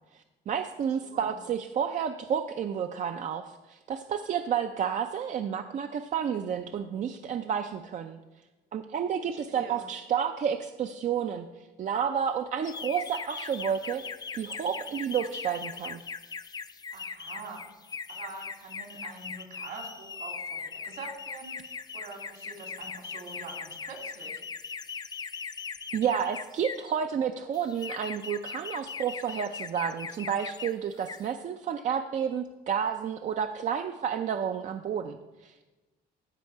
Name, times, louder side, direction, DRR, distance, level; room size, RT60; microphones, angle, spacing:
voice 1, 0.1-8.2 8.7-14.0 14.3-16.0 25.9-35.6, right 8 dB, 45° right, 7 dB, 0.5 m, -31 dB
voice 2, 1.0-1.3 9.5-9.9 16.9-17.6 17.9-24.4, right 3 dB, 70° right, 2 dB, 2.7 m, -45 dB
sound 1, 12.6-26.9 27.5-30.7 31.0-31.3, left 5 dB, 25° left, 0.4 m, -40 dB
15.0 x 5.3 x 4.7 m, 1.1 s
cardioid pair, 110°, 17 cm